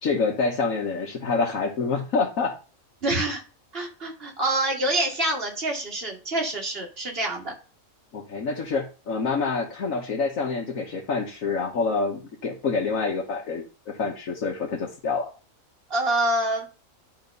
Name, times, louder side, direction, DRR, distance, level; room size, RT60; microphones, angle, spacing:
voice 1, 0.0-2.5 8.1-15.3, left 4 dB, 75° left, -2 dB, 1.6 m, -27 dB
voice 2, 3.0-3.4 3.7-7.5 15.9-16.7, right 1 dB, 45° right, 1 dB, 2.1 m, -26 dB
10.5 x 3.6 x 5.3 m, 0.34 s
omnidirectional pair, 1.4 m